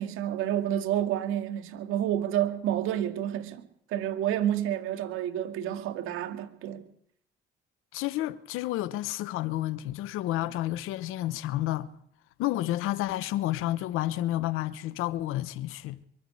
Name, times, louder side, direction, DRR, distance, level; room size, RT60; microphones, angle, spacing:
voice 1, 0.0-6.8, right 11 dB, 85° right, 2.4 m, -29 dB
voice 2, 7.9-11.9 12.4-16.0, left 15 dB, 85° left, 1.1 m, -30 dB
23.0 x 13.5 x 8.5 m
supercardioid pair, 55°, 21 cm